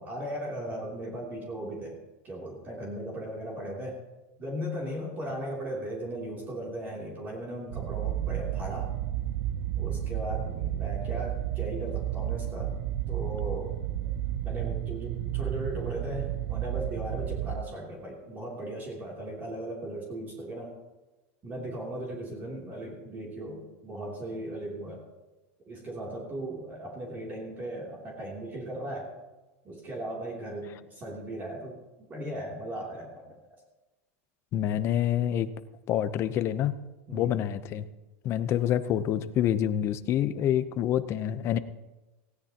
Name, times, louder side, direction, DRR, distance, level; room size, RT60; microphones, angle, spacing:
voice 1, 0.0-2.0 2.2-4.0 4.4-8.9 9.8-12.7 13.1-13.8 14.4-20.7 21.4-25.0 25.7-29.1 29.6-31.8 32.1-33.4 37.1-37.4, right 1 dB, 25° right, -3 dB, 3.0 m, -37 dB
sound 1, 7.7-17.6, right 12 dB, 60° right, 0.5 m, -32 dB
voice 2, 34.5-35.5 35.9-36.7 37.1-37.9 38.2-41.6, left 10 dB, 35° left, 13 dB, 0.8 m, -27 dB
19.0 x 16.5 x 2.9 m, 1.1 s
supercardioid pair, 150°, 8 cm